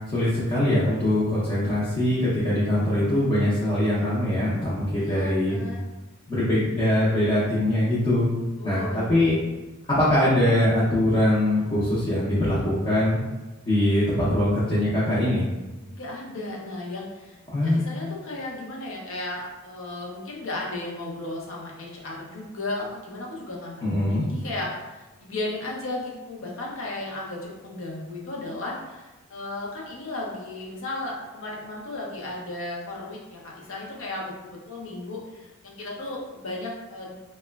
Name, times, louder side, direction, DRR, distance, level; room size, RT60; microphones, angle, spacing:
voice 1, 0.1-5.6 6.3-8.3 8.6-9.3 9.9-13.2 13.6-15.5 17.5-18.0 23.8-24.3, left 1 dB, 25° left, -10 dB, 0.5 m, -22 dB
voice 2, 5.0-5.9 8.6-9.4 15.9-37.1, left 2 dB, 65° left, -2 dB, 0.6 m, -35 dB
2.9 x 2.2 x 2.2 m, 1.1 s
head